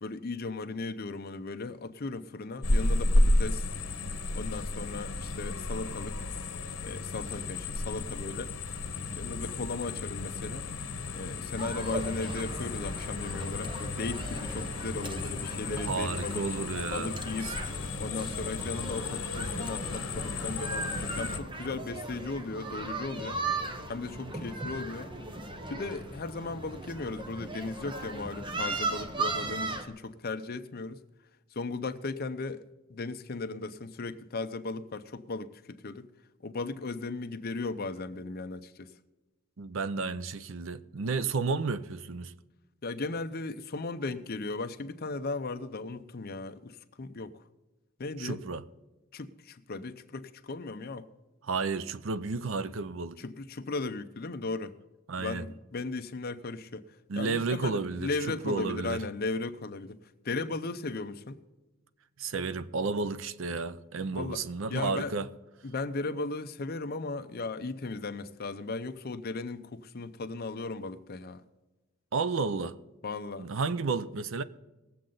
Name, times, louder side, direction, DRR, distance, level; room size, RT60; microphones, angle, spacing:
voice 1, 0.0-3.7 4.3-6.2 6.8-8.5 9.1-10.7 11.1-16.5 16.9-23.4 23.9-25.1 25.7-31.0 31.5-32.6 32.9-36.1 36.4-38.9 42.8-47.3 48.0-48.4 49.1-51.1 53.2-54.8 55.2-56.9 57.2-60.0 60.2-61.4 64.1-64.4 64.7-65.2 65.6-71.4 73.0-73.5, left 3 dB, 50° left, 0.7 m, -36 dB
sound 1, 2.6-21.4, left 2 dB, 85° left, 1.1 m, -32 dB
sound 2, 11.6-29.8, right 3 dB, 25° right, 0.9 m, -38 dB
sound 3, 12.4-23.0 23.3-27.3 27.7-29.9, left 1 dB, 85° right, 4.4 m, -53 dB
voice 2, 15.8-17.1 17.4-17.5 24.2-24.3 39.6-42.3 48.2-48.6 51.4-53.2 55.1-55.4 57.1-59.1 62.2-65.3 72.1-72.8 73.4-74.4, right 4 dB, 70° right, 0.6 m, -32 dB
19.5 x 7.6 x 3.9 m
head